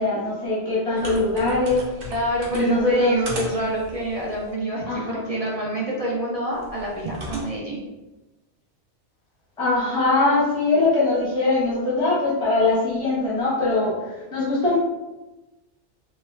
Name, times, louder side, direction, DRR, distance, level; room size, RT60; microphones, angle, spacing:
voice 1, 0.0-2.1 2.5-3.2 4.9-5.2 9.6-14.8, left 3 dB, 5° left, -7 dB, 0.8 m, -22 dB
sound 1, 1.0-4.5 6.5-7.4, right 1 dB, 65° right, 1.0 m, -36 dB
voice 2, 2.0-7.8, right 1 dB, 50° right, -3 dB, 0.4 m, -27 dB
3.1 x 2.4 x 3.1 m, 1.1 s
omnidirectional pair, 1.2 m